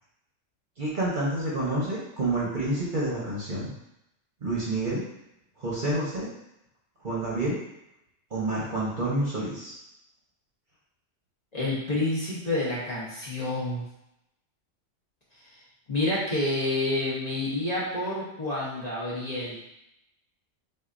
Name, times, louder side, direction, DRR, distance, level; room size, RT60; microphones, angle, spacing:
voice 1, 0.8-3.7 4.4-5.0 5.6-6.3 7.0-7.5 8.3-9.7, right 2 dB, 40° right, -6 dB, 1.0 m, -28 dB
voice 2, 11.5-13.8 15.9-19.6, left 2 dB, 35° left, -7 dB, 1.1 m, -28 dB
6.2 x 2.5 x 2.6 m, 0.85 s
omnidirectional pair, 1.3 m